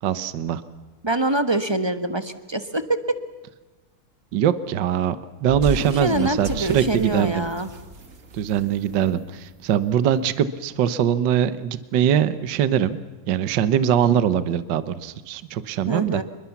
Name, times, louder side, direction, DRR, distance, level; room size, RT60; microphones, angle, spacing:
voice 1, 0.0-0.6 4.3-5.2 5.4-7.4 8.3-13.0 13.3-16.2, right 9 dB, 65° right, 14 dB, 1.5 m, -22 dB
voice 2, 1.0-3.2 5.9-7.7 15.9-16.2, right 2 dB, 20° right, 10 dB, 0.9 m, -24 dB
sound 1, 5.5-9.9, right 2 dB, 40° right, 1.9 m, -34 dB
27.0 x 23.0 x 7.2 m, 1.3 s
omnidirectional pair, 2.3 m